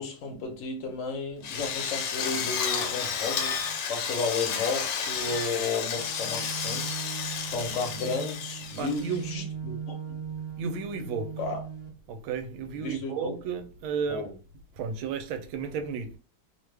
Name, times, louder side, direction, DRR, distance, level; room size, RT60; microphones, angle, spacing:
voice 1, 0.0-3.5 3.9-6.8 7.5-10.0 11.4-11.6 12.7-13.3 14.1-14.3, left 4 dB, 55° left, 0.8 m, -33 dB
Drill, 1.4-9.3, left 6 dB, 70° left, 1.2 m, -32 dB
sound 1, 5.9-11.9, right 7 dB, 25° left, 0.5 m, -39 dB
voice 2, 8.8-9.6 10.6-11.4 12.1-14.3 14.7-16.2, right 6 dB, 80° right, 1.4 m, -33 dB
3.3 x 2.1 x 3.2 m
omnidirectional pair, 2.3 m